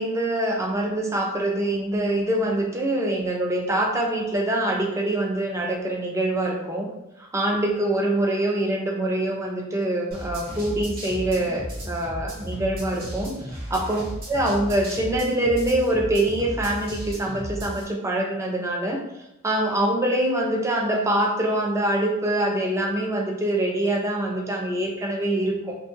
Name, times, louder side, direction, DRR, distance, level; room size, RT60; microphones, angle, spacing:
voice 1, 0.0-6.9 7.2-19.0 19.4-25.8, right 1 dB, 15° right, 0 dB, 0.4 m, -24 dB
sound 1, 10.1-17.8, equal, 45° right, 0.9 m, -35 dB
2.5 x 2.2 x 2.9 m, 0.91 s
head